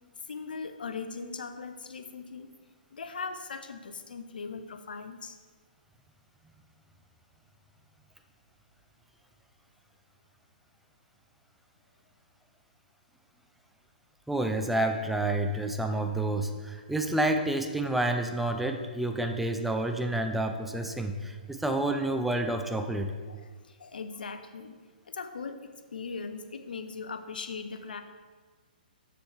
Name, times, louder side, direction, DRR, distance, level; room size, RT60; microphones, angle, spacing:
voice 1, 0.3-2.5 2.9-5.4 23.3-24.8 25.1-28.0, left 5 dB, 70° left, 8 dB, 0.6 m, -39 dB
voice 2, 14.3-23.1, right 1 dB, ahead, 5 dB, 0.4 m, -29 dB
7.0 x 6.8 x 3.3 m, 1.5 s
figure-of-eight pair, 125°, 5 cm